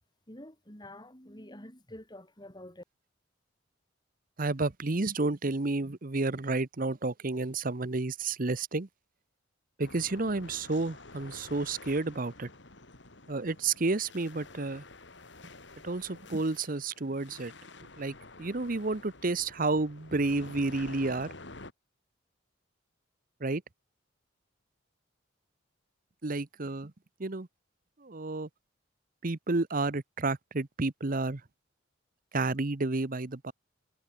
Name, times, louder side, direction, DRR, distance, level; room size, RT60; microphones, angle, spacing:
voice 1, 0.3-2.8, left 1 dB, 20° left, 7.8 m, -48 dB
voice 2, 4.4-8.9 9.8-12.5 13.3-14.8 15.8-17.5 18.0-21.3 23.4-23.6 26.2-26.9 27.2-27.5 28.0-28.5 29.2-31.4 32.3-33.5, right 3 dB, 45° right, 1.0 m, -31 dB
sound 1, 9.8-21.7, left 3 dB, 65° left, 3.3 m, -49 dB
head